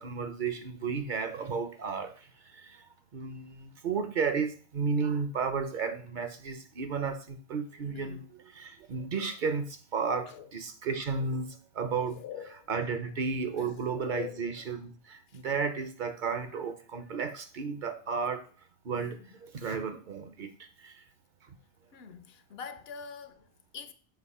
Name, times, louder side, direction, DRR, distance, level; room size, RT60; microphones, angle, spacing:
voice 1, 0.0-2.8 3.1-11.5 11.7-12.2 12.7-18.4 18.8-20.5 20.8-20.9, right 5 dB, 55° right, 0.7 m, -33 dB
voice 2, 7.9-8.3 10.3-10.5 11.9-12.7 13.5-14.5 15.3-15.4 18.9-19.3 21.9-23.9, left 8 dB, 75° left, 0.8 m, -44 dB
6.3 x 2.9 x 5.3 m
omnidirectional pair, 1.0 m